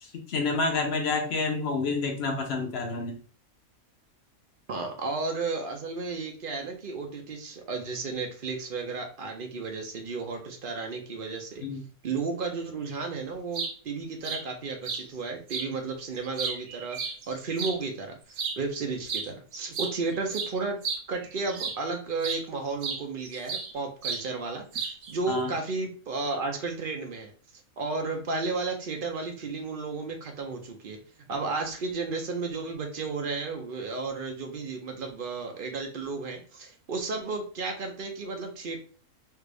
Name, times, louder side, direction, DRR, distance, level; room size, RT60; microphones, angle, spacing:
voice 1, 0.0-3.2 11.6-11.8 25.3-25.5, left 3 dB, 55° left, 2 dB, 0.9 m, -29 dB
voice 2, 4.7-11.6 12.0-17.0 17.3-20.8 21.1-27.3 27.8-31.0 31.3-38.8, right 3 dB, 55° right, 3 dB, 0.6 m, -33 dB
sound 1, 13.3-13.7 14.2-14.4 14.8-15.0 15.5-15.7 16.1-17.8 18.3-18.6 19.1-19.3 19.5-21.9 22.2-22.4 22.8-23.7 24.0-24.2 24.7-25.1, right 5 dB, 80° right, 1.1 m, -33 dB
3.3 x 2.5 x 3.3 m, 0.41 s
omnidirectional pair, 1.5 m